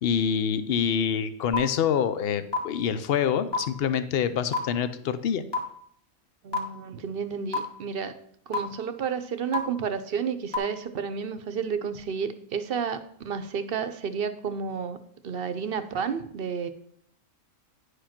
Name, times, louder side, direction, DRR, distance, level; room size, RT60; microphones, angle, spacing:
voice 1, 0.0-5.4, left 8 dB, 55° left, 12 dB, 0.8 m, -26 dB
sound 1, 1.5-1.6 2.5-2.6 3.5-3.6 4.5-4.6 5.5-5.6 6.5-6.6 7.5-7.6 8.5-8.6 9.5-9.6 10.5-10.6, left 6 dB, 20° left, 1.6 m, -25 dB
voice 2, 6.4-8.1 8.5-15.0 15.2-16.7, right 6 dB, 55° right, 11 dB, 0.8 m, -31 dB
10.0 x 5.0 x 5.8 m, 0.66 s
omnidirectional pair, 1.3 m